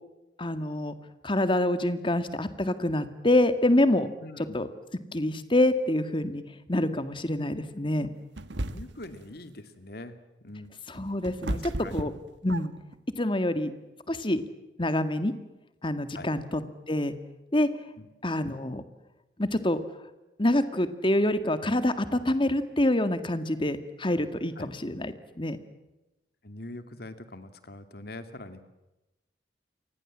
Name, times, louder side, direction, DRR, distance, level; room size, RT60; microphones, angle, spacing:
voice 1, 0.4-0.9 1.2-4.1 4.5-4.7 5.1-6.4 6.7-8.1 10.9-12.1 12.4-12.7 13.2-13.7 14.1-14.4 14.8-15.3 15.8-16.6 16.9-17.1 17.5-17.7 18.2-18.8 19.4-19.8 20.4-25.6, left 1 dB, 30° left, 11 dB, 2.0 m, -26 dB
voice 2, 4.2-4.6 8.7-10.7 11.5-12.0 16.1-16.3 18.0-18.1 24.6-24.7 26.4-28.6, left 2 dB, 60° left, 10 dB, 2.5 m, -43 dB
sound 1, 8.4-9.1 10.7-13.0, right 1 dB, 80° right, 1.4 m, -34 dB
29.5 x 24.0 x 7.5 m, 1.0 s
head